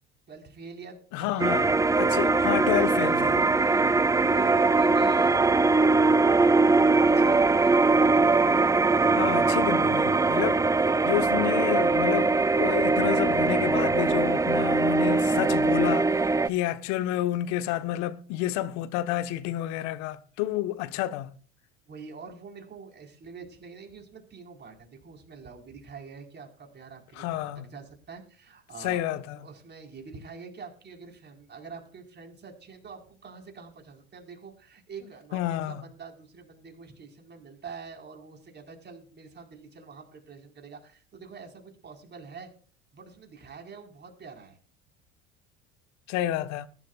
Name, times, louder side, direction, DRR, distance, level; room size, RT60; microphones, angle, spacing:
voice 1, 0.3-1.4 3.5-5.5 7.1-7.8 21.9-29.0 29.3-42.5 42.9-44.6, right 5 dB, 35° right, 4.7 m, -45 dB
voice 2, 1.1-3.4 9.2-21.3 27.2-27.6 28.8-29.4 35.3-35.8 46.1-46.7, left 14 dB, 60° left, 1.3 m, -30 dB
sound 1, 1.4-16.5, right 3 dB, 10° right, 0.6 m, -22 dB
20.5 x 11.5 x 2.5 m
hypercardioid pair, 75°, 31 cm